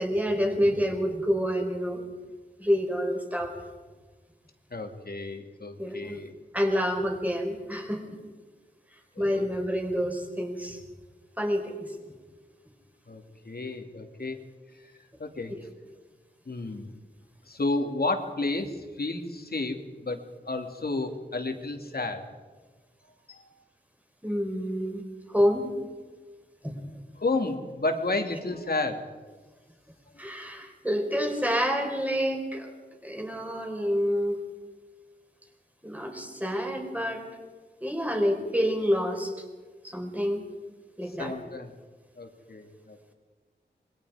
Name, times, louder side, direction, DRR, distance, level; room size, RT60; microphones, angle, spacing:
voice 1, 0.0-2.0 2.6-3.5 5.8-6.2 6.5-8.2 9.2-10.8 11.4-11.9 24.2-25.0 25.3-25.7 26.6-26.8 30.2-32.7 33.0-34.4 35.8-37.3 37.8-39.3 39.8-40.4 41.0-41.3, equal, 10° right, 2 dB, 4.9 m, -28 dB
voice 2, 4.7-6.3 9.1-9.5 13.1-14.4 15.2-15.6 16.5-16.9 17.5-22.3 23.3-23.5 27.2-29.0 41.1-41.7 42.2-43.1, left 2 dB, 60° left, 5 dB, 2.7 m, -32 dB
26.5 x 22.0 x 5.0 m, 1.4 s
wide cardioid pair, 65°, 18 cm